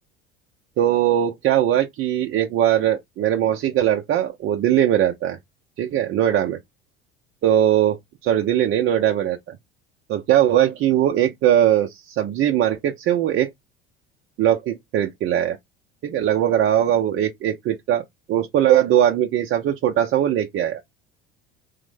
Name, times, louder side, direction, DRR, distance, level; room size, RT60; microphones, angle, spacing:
voice 1, 0.8-5.4 5.8-6.6 7.4-9.6 10.1-13.5 14.4-15.6 16.0-20.8, right 11 dB, 40° right, 0.5 m, -20 dB
3.2 x 2.0 x 3.2 m
hypercardioid pair, 80°, 30 cm